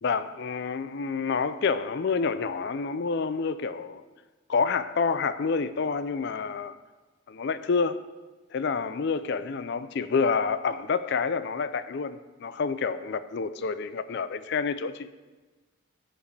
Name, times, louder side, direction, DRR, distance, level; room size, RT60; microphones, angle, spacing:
voice 1, 0.0-4.0 4.5-6.8 7.3-8.0 8.5-15.1, left 5 dB, 55° left, 0.4 m, -28 dB
15.5 x 5.1 x 3.3 m
head